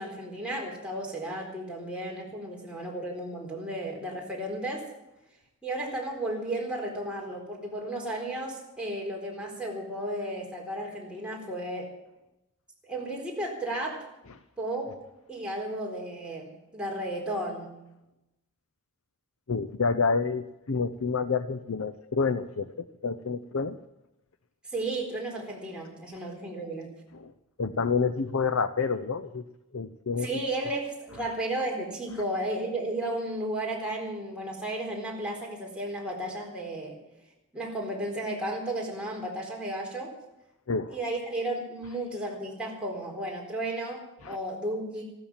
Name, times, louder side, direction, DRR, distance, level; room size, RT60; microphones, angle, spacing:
voice 1, 0.0-4.9 5.6-11.9 12.8-14.1 14.6-15.0 15.3-17.9 24.7-26.9 30.2-37.0 37.5-40.2 40.9-45.0, right 1 dB, 5° right, -3 dB, 4.1 m, -34 dB
voice 2, 19.5-23.8 26.1-26.2 27.1-27.3 27.6-29.4 29.7-30.3 40.7-41.0 44.2-44.4, left 5 dB, 65° left, 12 dB, 0.7 m, -28 dB
15.0 x 13.0 x 7.3 m, 0.90 s
head